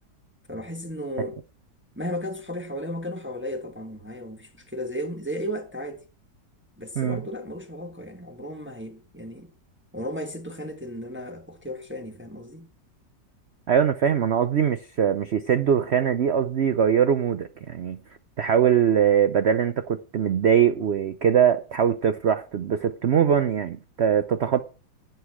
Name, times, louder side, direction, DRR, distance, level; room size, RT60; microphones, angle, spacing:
voice 1, 0.5-1.4 1.9-6.0 6.8-9.5 9.9-12.7, equal, 5° right, 1.3 m, -34 dB
voice 2, 13.7-18.0 18.4-24.6, right 8 dB, 85° right, 0.5 m, -22 dB
11.5 x 9.3 x 4.8 m
omnidirectional pair, 1.9 m